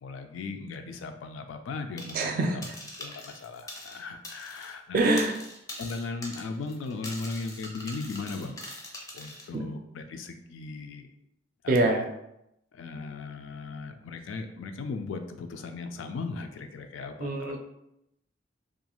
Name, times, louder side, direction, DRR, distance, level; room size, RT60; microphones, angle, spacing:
voice 1, 0.0-2.6 3.0-5.0 5.8-8.6 9.1-11.1 11.6-12.0 12.7-17.6, left 3 dB, 85° left, 7 dB, 0.3 m, -37 dB
sound 1, 2.0-2.3 2.6-4.7 5.0-9.5, left 1 dB, 15° left, 0.4 m, -43 dB
voice 2, 2.1-2.8 4.9-5.4 9.5-9.6 11.7-12.1 17.2-17.6, right 2 dB, 45° right, 4 dB, 0.4 m, -25 dB
2.5 x 2.3 x 2.9 m, 0.83 s
head